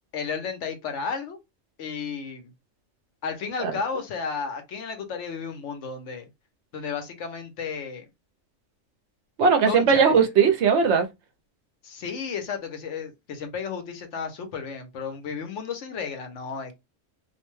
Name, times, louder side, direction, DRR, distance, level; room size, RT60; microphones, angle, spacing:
voice 1, 0.1-1.4 1.8-2.5 3.2-6.3 6.7-8.0 9.6-10.3 11.8-16.7, left 6 dB, 70° left, 1.0 m, -33 dB
voice 2, 9.4-11.1, right 6 dB, 70° right, 0.9 m, -19 dB
2.6 x 2.1 x 3.0 m
omnidirectional pair, 1.3 m